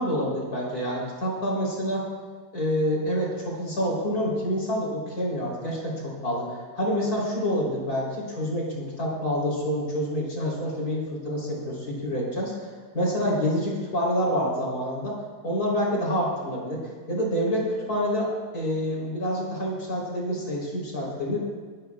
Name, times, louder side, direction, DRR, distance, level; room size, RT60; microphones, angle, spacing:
voice 1, 0.0-2.1 2.5-12.7 12.9-15.2 15.4-21.4, equal, 65° left, -4 dB, 4.4 m, -27 dB
24.0 x 12.0 x 2.4 m, 1.5 s
omnidirectional pair, 1.7 m